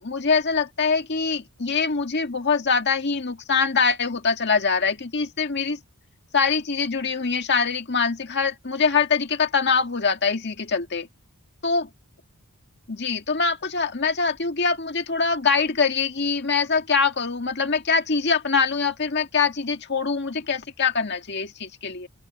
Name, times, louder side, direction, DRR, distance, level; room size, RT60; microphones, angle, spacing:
voice 1, 0.0-5.8 6.3-11.1 11.6-11.9 12.9-22.1, left 5 dB, 50° left, 1.8 m, -23 dB
open air
head